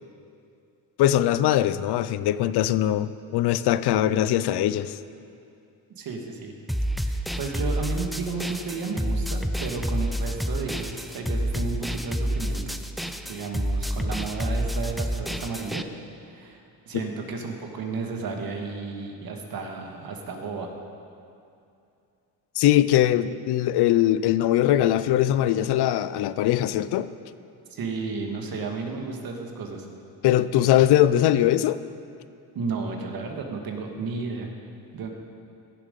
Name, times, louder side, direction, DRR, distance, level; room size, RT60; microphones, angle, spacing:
voice 1, 1.0-5.0 22.6-27.1 30.2-31.8, left 12 dB, 70° left, 15 dB, 0.6 m, -21 dB
voice 2, 6.0-6.5 7.0-12.7 13.3-15.9 16.2-16.6 16.9-20.7 27.7-29.9 32.5-34.5 34.9-35.1, right 4 dB, 60° right, 3 dB, 1.7 m, -33 dB
sound 1, 6.7-15.8, equal, ahead, 0.5 m, -29 dB
15.5 x 7.4 x 5.3 m, 2.5 s
cardioid pair, 90°, 41 cm